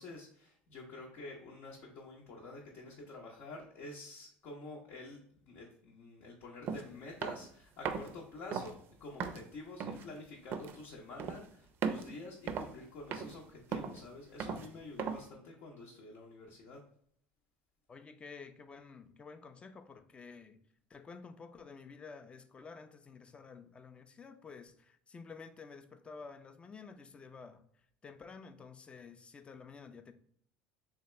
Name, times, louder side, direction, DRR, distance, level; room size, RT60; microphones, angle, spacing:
voice 1, 0.0-16.8, left 2 dB, 60° left, 0.8 m, -49 dB
sound 1, 6.7-6.8 7.2-7.5 7.9-8.1 8.5-8.7 9.2-9.4 9.8-10.1 10.5-10.8 11.2-11.5 11.8-12.1 12.5-12.8 13.1-13.4 13.7-14.0 14.4-14.7 15.0-15.3, right 6 dB, 50° right, 0.4 m, -37 dB
voice 2, 17.9-20.6 20.9-27.6 28.0-30.1, left 5 dB, 25° left, 0.4 m, -51 dB
3.4 x 2.8 x 3.1 m
supercardioid pair, 95°, 5 cm